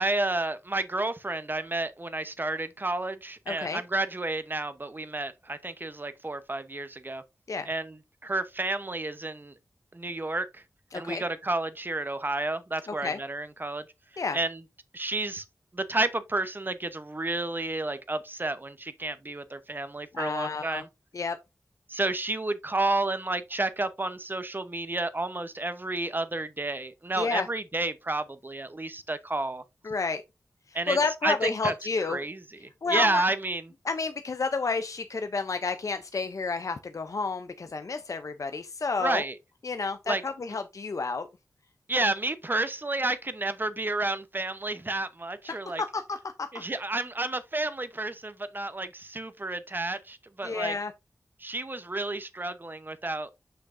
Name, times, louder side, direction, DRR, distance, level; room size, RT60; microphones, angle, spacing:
voice 1, 0.0-7.2 7.6-8.0 8.2-9.5 9.9-10.6 10.9-13.8 14.3-14.6 14.9-15.4 15.7-20.9 21.9-29.6 30.7-31.0 31.2-31.7 32.1-32.4 32.9-33.7 39.0-39.4 40.1-40.2 41.9-45.8 46.5-50.8 51.4-53.3, right 2 dB, 35° right, 0.8 m, -31 dB
voice 2, 3.5-3.8 7.5-7.7 10.9-11.2 13.0-13.2 14.2-14.4 20.1-20.8 21.1-21.4 27.2-27.5 29.8-30.2 30.7-32.2 32.8-33.2 33.8-39.2 39.6-41.3 45.5-46.5 50.4-50.9, left 4 dB, 65° left, 0.6 m, -30 dB
6.7 x 5.8 x 2.6 m
cardioid pair, 50°, 6 cm